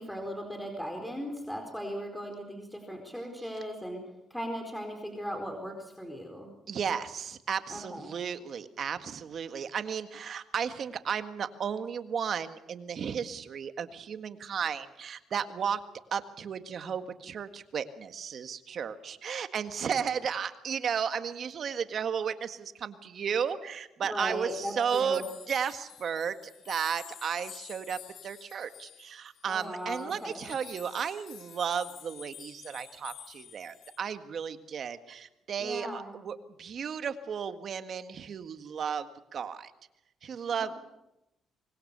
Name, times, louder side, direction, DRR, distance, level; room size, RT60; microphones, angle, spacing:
voice 1, 0.0-4.0 4.3-6.5 7.7-8.1 24.0-25.2 29.5-30.4 35.6-36.1 40.5-40.8, equal, 5° left, 3 dB, 4.4 m, -38 dB
voice 2, 6.7-15.8 16.1-25.2 25.5-39.7 40.2-40.8, right 7 dB, 55° right, 9 dB, 1.7 m, -34 dB
sound 1, 24.5-34.0, left 10 dB, 75° left, 3.6 m, -50 dB
25.0 x 20.5 x 6.9 m, 0.89 s
cardioid pair, 90°, 0 cm